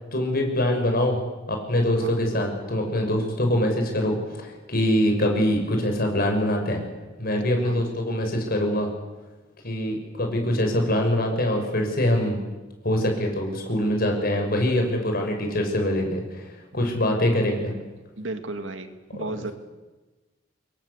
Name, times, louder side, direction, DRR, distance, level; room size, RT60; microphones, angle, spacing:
voice 1, 0.1-1.2 1.5-6.8 7.2-8.9 9.6-12.4 12.8-16.5 16.7-17.7 19.1-19.4, left 1 dB, 50° left, 3 dB, 6.3 m, -24 dB
voice 2, 18.2-19.5, right 2 dB, 80° right, 8 dB, 2.2 m, -34 dB
26.0 x 22.5 x 8.4 m, 1.2 s
head